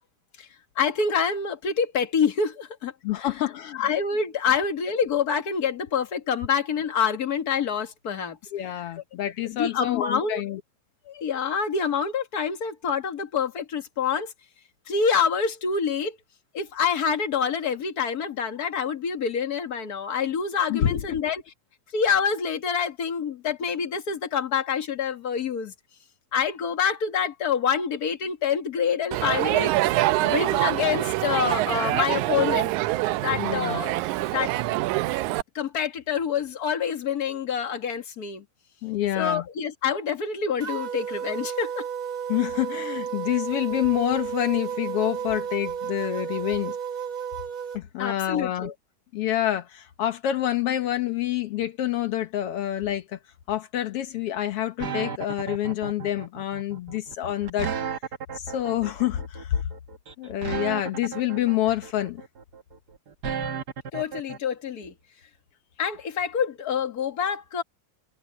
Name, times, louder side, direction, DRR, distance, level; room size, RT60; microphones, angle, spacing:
voice 1, 0.8-2.9 3.2-3.3 3.7-8.4 9.5-10.4 11.1-14.3 14.9-16.2 16.5-21.4 21.9-25.7 26.3-29.7 30.2-32.7 33.2-34.8 35.5-38.4 39.2-41.9 48.0-48.7 63.9-64.9 65.8-67.6, left 6 dB, 35° left, 1.7 m, -26 dB
voice 2, 3.0-3.8 8.5-10.6 20.7-21.2 33.4-33.8 38.8-39.4 42.3-46.8 47.7-48.7 49.1-53.2 53.5-57.7 58.3-59.6 60.2-62.2, left 12 dB, 85° left, 1.3 m, -27 dB
Crowd, 29.1-35.4, right 17 dB, 85° right, 1.8 m, -25 dB
sound 1, 40.6-47.8, right 8 dB, 35° right, 1.3 m, -32 dB
sound 2, 54.8-64.4, right 6 dB, 65° right, 1.0 m, -34 dB
omnidirectional pair, 4.0 m